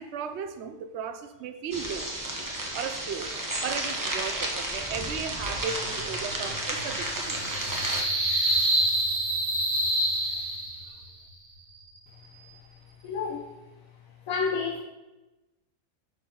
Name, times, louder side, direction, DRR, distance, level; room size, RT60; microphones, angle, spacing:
voice 1, 0.0-2.1 2.7-3.3 3.6-7.4, right 6 dB, 60° right, 9 dB, 0.8 m, -36 dB
sound 1, 1.7-8.0, right 1 dB, 20° right, 0.7 m, -32 dB
sound 2, 5.1-11.1, right 1 dB, 80° right, 2.9 m, -28 dB
voice 2, 13.0-13.5 14.3-14.8, left 5 dB, 70° left, 2 dB, 1.1 m, -29 dB
11.5 x 4.3 x 3.8 m, 1.1 s
omnidirectional pair, 1.6 m